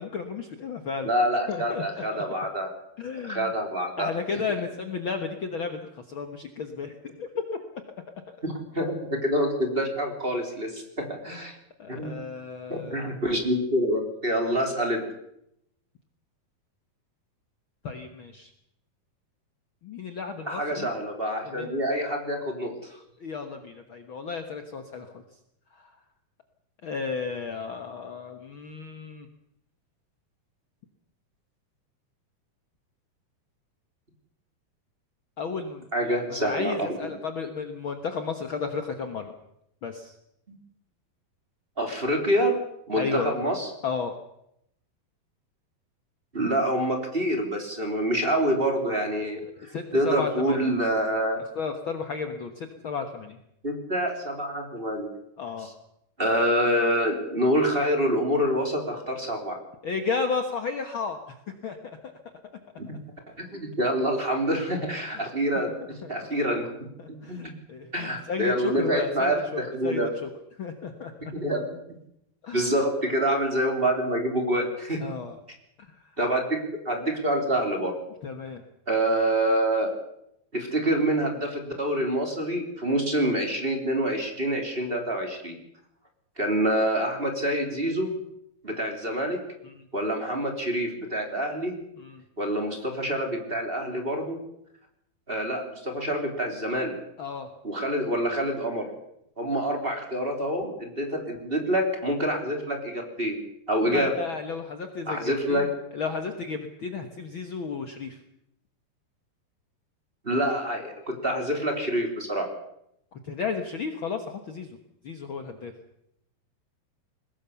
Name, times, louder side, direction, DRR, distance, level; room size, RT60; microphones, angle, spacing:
voice 1, 0.0-1.1 1.5-2.2 3.0-3.5 4.0-7.4 8.3-8.4 11.8-13.2 17.8-18.5 19.8-20.9 21.4-21.7 23.2-25.2 25.7-25.9 26.8-29.3 35.4-39.3 39.8-40.2 43.0-43.5 43.8-44.2 49.4-50.7 51.5-53.4 55.4-55.7 59.8-62.1 65.5-65.6 66.0-66.1 67.0-70.3 70.6-71.1 72.4-72.8 75.0-75.4 75.8-76.1 78.2-78.6 89.6-89.8 92.0-92.2 97.2-97.5 103.9-108.2 113.1-114.8 115.0-115.7, left 5 dB, 75° left, 6 dB, 1.1 m, -33 dB
voice 2, 1.0-2.7 3.2-4.1 8.4-11.6 11.9-12.2 12.7-15.1 20.5-22.8 35.9-37.1 41.8-42.6 42.9-43.7 46.3-51.4 53.6-55.1 55.6-55.7 56.2-59.6 62.8-62.9 63.4-66.7 67.1-67.4 67.9-70.1 71.3-71.7 72.5-75.0 76.2-77.9 78.9-79.9 80.5-85.5 86.4-88.1 88.6-89.4 89.9-91.7 92.4-94.4 95.3-96.9 97.6-98.9 99.4-103.4 103.7-104.1 105.1-105.7 110.2-112.5, equal, 15° right, 3 dB, 2.8 m, -26 dB
22.0 x 20.0 x 7.0 m, 0.78 s
omnidirectional pair, 4.4 m